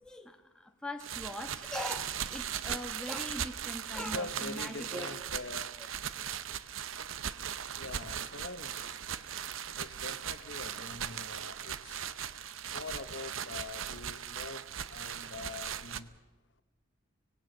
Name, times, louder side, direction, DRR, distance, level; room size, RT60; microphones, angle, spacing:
voice 1, 0.0-5.1, left 1 dB, 5° left, 4 dB, 1.2 m, -41 dB
sound 1, 1.0-16.0, right 9 dB, 70° right, 0.8 m, -38 dB
voice 2, 4.0-5.8 7.7-9.0 9.8-12.1 12.6-14.6 14.9-16.1, left 3 dB, 60° left, 10 dB, 1.2 m, -44 dB
25.0 x 18.5 x 6.6 m, 1.1 s
head